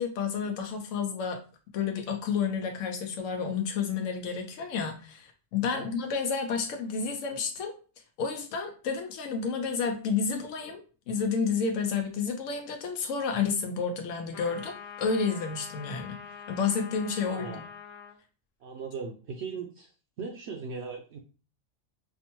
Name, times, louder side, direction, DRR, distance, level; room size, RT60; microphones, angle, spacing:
voice 1, 0.0-1.4 1.7-7.7 8.2-10.8 11.1-16.2 16.5-17.6, left 5 dB, 90° left, 4 dB, 1.0 m, -30 dB
sound 1, 14.3-18.2, left 7 dB, 60° left, 0.8 m, -44 dB
voice 2, 17.2-17.6 18.6-19.9 20.2-21.2, right 5 dB, 65° right, 1 dB, 0.8 m, -38 dB
4.4 x 2.1 x 2.9 m, 0.36 s
omnidirectional pair, 1.3 m